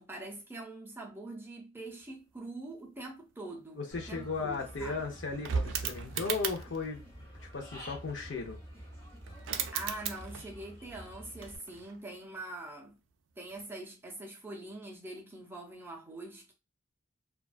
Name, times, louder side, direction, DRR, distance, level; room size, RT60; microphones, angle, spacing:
voice 1, 0.0-5.0 9.7-13.0 13.4-16.5, right 2 dB, 10° right, 0.5 m, -44 dB
voice 2, 3.7-8.6, left 4 dB, 65° left, 0.6 m, -36 dB
Human voice / Bird, 3.9-11.6, equal, 15° left, 1.2 m, -49 dB
sound 1, 4.0-4.1 4.3-6.9 8.9-9.0 9.3-10.6 10.9-12.1 13.5-13.7, right 7 dB, 75° right, 0.3 m, -37 dB
2.4 x 2.2 x 2.3 m
head